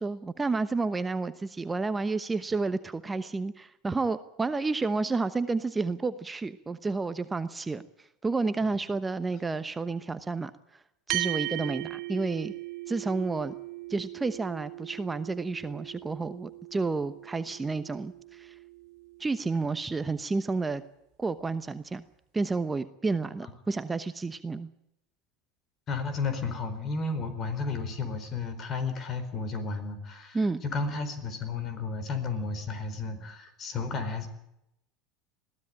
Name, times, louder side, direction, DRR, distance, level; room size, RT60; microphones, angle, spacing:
voice 1, 0.0-10.5 11.1-12.5 12.9-13.5 13.9-18.5 19.2-20.8 21.2-22.0 22.3-24.7 30.3-30.6, right 3 dB, 15° right, 12 dB, 1.0 m, -30 dB
sound 1, 11.1-19.8, right 19 dB, 55° right, 1.3 m, -38 dB
voice 2, 25.9-34.3, left 4 dB, 40° left, 11 dB, 4.4 m, -33 dB
21.5 x 15.0 x 8.9 m, 0.83 s
hypercardioid pair, 80°, 0 cm